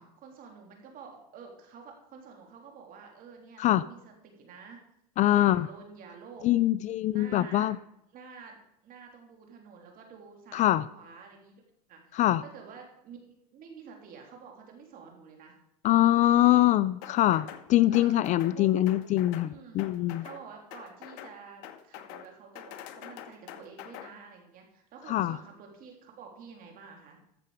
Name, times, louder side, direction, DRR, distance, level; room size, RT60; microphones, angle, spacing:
voice 1, 0.2-4.8 5.3-6.5 7.1-7.7 8.1-11.6 11.9-15.6 16.5-16.8 17.9-18.8 19.4-19.9 20.2-27.2, right 6 dB, 45° right, 2 dB, 3.4 m, -49 dB
voice 2, 5.2-5.7 6.4-7.8 10.5-10.8 12.1-12.4 15.8-20.2 25.1-25.4, left 14 dB, 35° left, 17 dB, 0.4 m, -23 dB
sound 1, 17.0-17.7 17.9-18.6 18.9-19.5 19.8-20.4 20.7-21.4 21.6-22.3 22.6-24.1, left 11 dB, 65° left, 1.1 m, -45 dB
14.0 x 6.7 x 4.9 m, 0.78 s
supercardioid pair, 110°, 20 cm